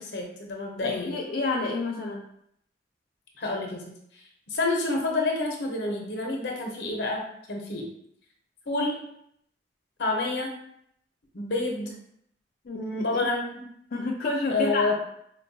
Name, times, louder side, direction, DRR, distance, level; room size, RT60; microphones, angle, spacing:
voice 1, 0.0-1.2 3.4-3.9 4.5-7.9 8.7-9.0 10.0-10.6 11.3-11.9 13.0-13.7 14.5-14.9, left 2 dB, 75° left, 0 dB, 0.7 m, -28 dB
voice 2, 0.8-2.2 12.7-13.3 13.9-14.9, left 3 dB, 55° left, -2 dB, 0.4 m, -29 dB
4.4 x 2.2 x 2.6 m, 0.72 s
head